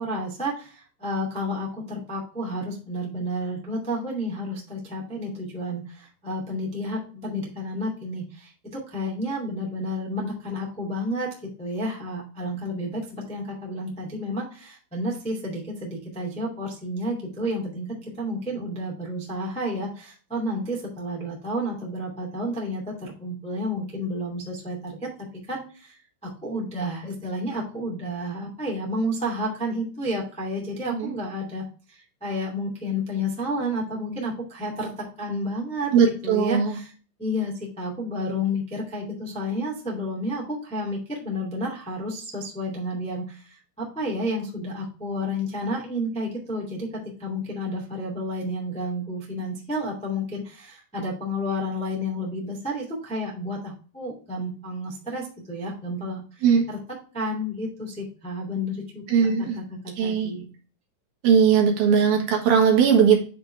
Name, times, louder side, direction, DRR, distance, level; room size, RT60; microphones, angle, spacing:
voice 1, 0.0-25.1 25.5-35.9 36.2-36.9 37.2-56.8 57.1-60.5, equal, 5° left, -2 dB, 1.4 m, -31 dB
voice 2, 35.9-36.8 56.4-56.6 59.1-59.6 60.0-60.3 61.2-63.2, right 7 dB, 65° right, 1 dB, 3.1 m, -19 dB
9.9 x 4.0 x 3.3 m, 0.39 s
omnidirectional pair, 4.9 m